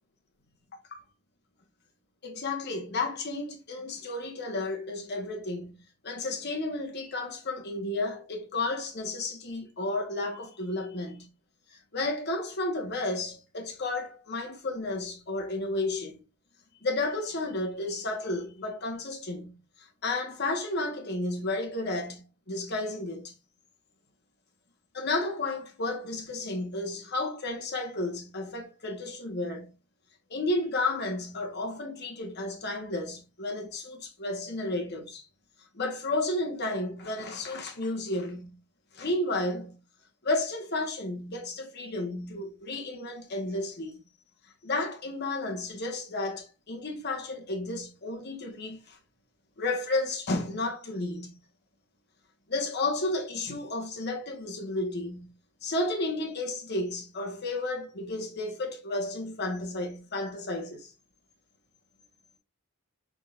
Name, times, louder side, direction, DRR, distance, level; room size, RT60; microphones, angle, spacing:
voice 1, 2.2-11.3 11.7-16.2 16.8-23.3 24.9-29.7 30.3-35.2 35.7-38.6 38.9-39.8 40.2-44.0 44.6-49.0 49.6-51.3 52.5-55.3 55.6-60.9, left 2 dB, 55° left, 1.3 m, -32 dB
6.0 x 3.7 x 2.4 m
head